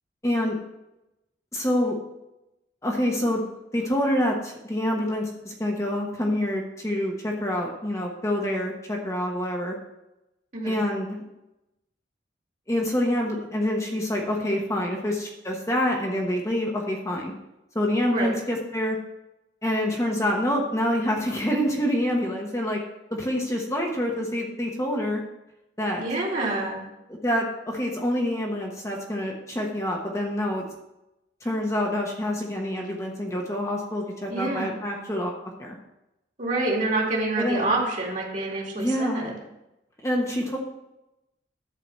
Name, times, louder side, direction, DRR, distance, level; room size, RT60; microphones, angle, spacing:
voice 1, 0.2-0.6 1.5-2.0 2.8-3.4 3.7-9.8 10.6-11.2 12.7-17.3 17.7-19.0 19.6-22.8 23.1-25.2 25.8-26.0 27.2-30.6 31.4-35.3 35.6-35.7 37.3-37.6 38.7-39.3 40.0-40.6, left 1 dB, 15° left, -1 dB, 1.1 m, -26 dB
voice 2, 26.0-26.9 34.3-34.7 36.4-39.4, right 2 dB, 45° right, -2 dB, 2.4 m, -27 dB
11.0 x 4.8 x 6.8 m, 0.93 s
head